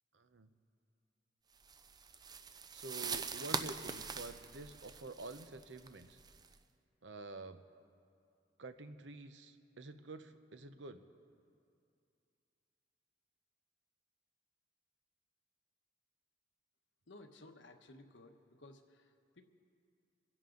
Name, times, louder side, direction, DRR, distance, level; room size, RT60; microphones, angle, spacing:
voice 1, 0.1-0.5 2.7-6.2 7.0-7.6 8.6-11.0, right 3 dB, 85° right, 9 dB, 0.9 m, -49 dB
sound 1, 1.6-6.5, right 5 dB, 20° right, 0.5 m, -43 dB
voice 2, 17.1-19.4, left 2 dB, 85° left, 6 dB, 1.1 m, -57 dB
27.0 x 11.0 x 3.9 m, 2.4 s
head